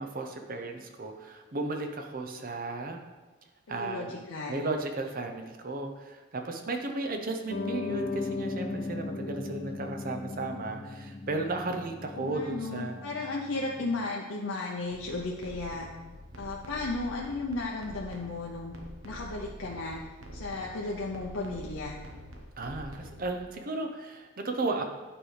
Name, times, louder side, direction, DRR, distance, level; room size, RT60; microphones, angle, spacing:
voice 1, 0.0-3.0 3.7-4.1 4.5-13.0 22.6-24.8, right 2 dB, 45° right, 5 dB, 0.7 m, -34 dB
voice 2, 3.7-4.7 12.1-15.9 16.4-18.7 19.0-20.0 20.3-22.0, left 3 dB, 75° left, -2 dB, 0.7 m, -34 dB
Piano, 7.5-14.0, left 3 dB, 40° left, 0.6 m, -37 dB
sound 1, 14.9-23.3, equal, 70° right, 0.9 m, -46 dB
8.8 x 4.9 x 3.3 m, 1.2 s
head